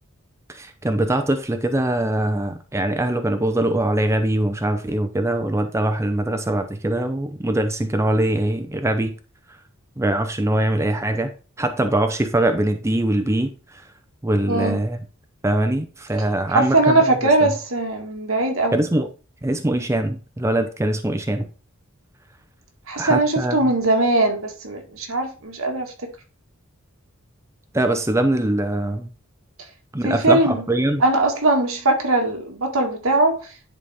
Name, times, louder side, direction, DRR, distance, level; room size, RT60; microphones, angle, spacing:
voice 1, 0.5-9.1 10.0-11.3 11.6-13.5 14.2-15.0 15.4-17.1 18.7-19.1 19.4-21.5 23.0-23.6 27.7-29.1 29.9-31.0, right 1 dB, 15° right, 0.6 m, -22 dB
voice 2, 14.5-14.8 16.5-18.8 22.9-25.9 30.0-30.6 31.0-33.4, right 2 dB, 75° right, 1.8 m, -20 dB
10.5 x 4.1 x 3.5 m
head